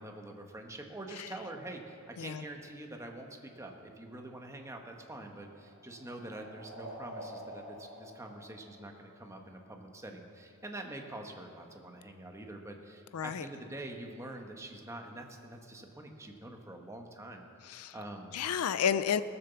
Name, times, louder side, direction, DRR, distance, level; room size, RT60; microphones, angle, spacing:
voice 1, 0.0-18.4, right 1 dB, 15° right, 3 dB, 1.1 m, -45 dB
sound 1, 5.3-9.4, equal, 55° right, 3.1 m, -48 dB
voice 2, 13.1-13.4 17.6-18.0 18.3-19.2, left 8 dB, 80° left, 13 dB, 0.4 m, -31 dB
18.0 x 7.0 x 6.9 m, 2.6 s
head